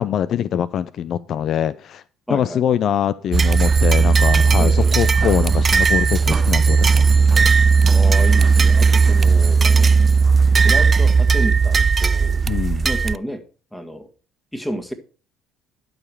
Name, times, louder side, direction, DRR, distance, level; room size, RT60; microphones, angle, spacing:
voice 1, 0.0-2.0 2.3-7.1 12.5-12.9, left 9 dB, 60° left, 0.4 m, -23 dB
voice 2, 2.3-2.6 4.6-5.0 7.8-9.9 10.6-12.4 12.8-13.4 13.7-14.1 14.5-14.9, equal, 5° left, 1.7 m, -30 dB
sound 1, 3.3-13.2, right 5 dB, 35° right, 0.3 m, -15 dB
12.0 x 4.9 x 4.6 m
supercardioid pair, 75°, 0 cm